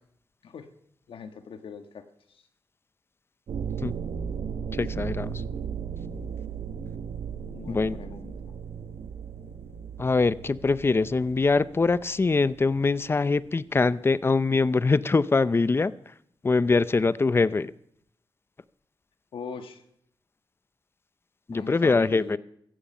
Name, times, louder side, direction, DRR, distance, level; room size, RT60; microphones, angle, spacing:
voice 1, 1.1-2.4 7.5-8.5 19.3-19.8 21.5-22.4, left 6 dB, 90° left, 8 dB, 1.4 m, -41 dB
sound 1, 3.5-12.9, right 7 dB, 85° right, 1.1 m, -36 dB
voice 2, 4.7-5.4 7.7-8.0 10.0-15.9 16.4-17.7 21.5-22.4, left 3 dB, 25° left, 17 dB, 0.5 m, -23 dB
16.0 x 14.5 x 5.5 m, 0.72 s
wide cardioid pair, 105°, 9 cm